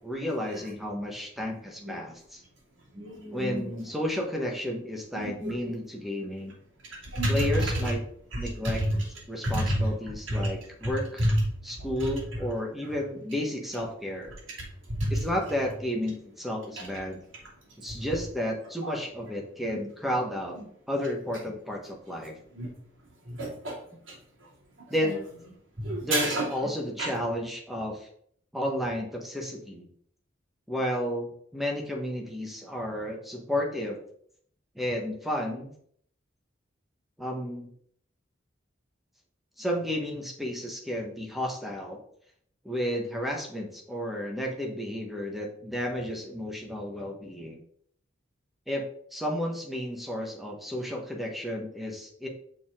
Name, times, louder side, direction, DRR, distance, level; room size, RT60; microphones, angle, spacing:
voice 1, 0.0-2.4 3.3-6.5 7.3-8.0 8.4-8.8 9.3-11.2 11.6-14.3 15.1-17.2 17.8-20.6 20.9-22.3 24.9-25.1 26.0-28.1 28.5-29.8 30.7-34.0 34.7-35.7 37.2-37.7 39.6-42.0 42.6-47.6 48.7-52.3, left 1 dB, ahead, 0 dB, 1.3 m, -32 dB
voice 2, 2.9-3.6 5.1-5.3 5.6-5.7 7.1-7.9 8.3-9.1 9.4-9.9 10.3-10.5 10.8-10.9 11.2-11.4 11.8-12.4 14.9-15.3 17.9-18.0 18.8-19.0 19.7-19.8 20.5-20.6 22.5-22.7 23.2-23.8 24.1-24.5 25.0-25.2 25.8-26.5 27.0-27.1, right 1 dB, 85° right, -3 dB, 2.8 m, -29 dB
6.7 x 5.2 x 3.7 m, 0.64 s
head